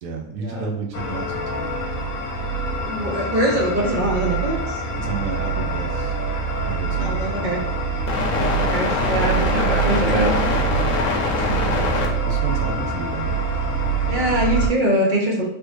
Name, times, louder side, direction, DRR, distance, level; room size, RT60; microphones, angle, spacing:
voice 1, 0.0-1.7 5.0-6.2 6.7-7.5 10.9-11.1 11.6-13.4, right 3 dB, 70° right, 2 dB, 1.0 m, -31 dB
sound 1, 0.9-14.7, right 2 dB, 65° left, 1.0 m, -23 dB
voice 2, 2.8-4.8 7.0-7.6 8.6-10.3 14.1-15.5, right 1 dB, 50° right, -2 dB, 0.6 m, -23 dB
3.4 x 2.7 x 3.1 m, 0.72 s
omnidirectional pair, 1.6 m